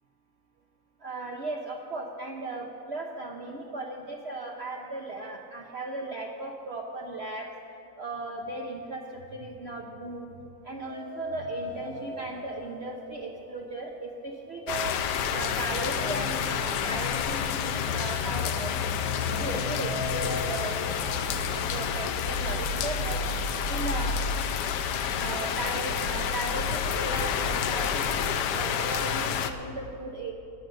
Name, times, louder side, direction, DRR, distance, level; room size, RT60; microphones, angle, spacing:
voice 1, 1.0-7.5 8.0-9.0 9.3-10.3 10.6-15.0 15.3-18.8 19.3-23.3 23.7-24.2 25.2-30.3, right 2 dB, 45° right, 0 dB, 1.0 m, -36 dB
sound 1, 10.8-14.9 15.2-15.3 16.3-16.4 16.8-20.6, left 1 dB, 5° right, 0.8 m, -41 dB
sound 2, 14.7-29.5, left 7 dB, 75° left, 1.3 m, -29 dB
11.5 x 10.5 x 7.9 m, 2.6 s
omnidirectional pair, 1.9 m